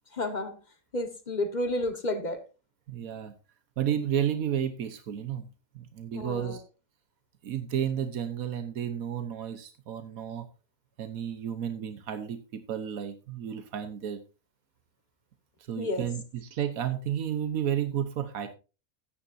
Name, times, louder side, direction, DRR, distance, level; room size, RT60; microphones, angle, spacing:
voice 1, 0.1-0.5 0.9-2.4 6.1-6.6 15.7-16.1, left 1 dB, 30° left, 8 dB, 1.6 m, -31 dB
voice 2, 2.9-3.3 3.8-5.5 5.7-6.6 7.4-10.4 11.0-14.2 15.7-18.5, right 9 dB, 90° right, 9 dB, 1.4 m, -32 dB
14.5 x 9.8 x 2.7 m, 0.31 s
omnidirectional pair, 1.5 m